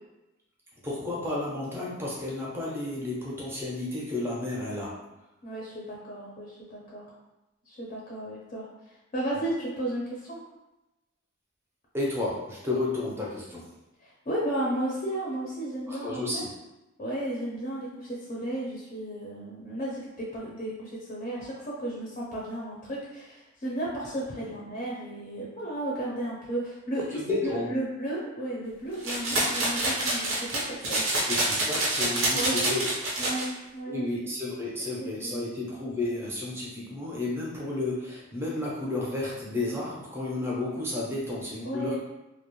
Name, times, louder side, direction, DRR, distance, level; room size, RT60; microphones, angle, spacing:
voice 1, 0.8-5.0 11.9-13.7 15.9-16.5 27.1-27.7 31.3-32.9 33.9-42.0, left 2 dB, 10° right, -5 dB, 0.6 m, -32 dB
voice 2, 5.4-7.1 7.7-10.4 14.0-16.4 17.0-31.0 32.3-32.9 33.2-34.0 35.0-35.5 41.6-42.0, right 1 dB, 40° left, -5 dB, 0.5 m, -34 dB
sound 1, 29.0-33.5, right 1 dB, 90° right, 0.7 m, -27 dB
2.3 x 2.1 x 3.0 m, 0.97 s
head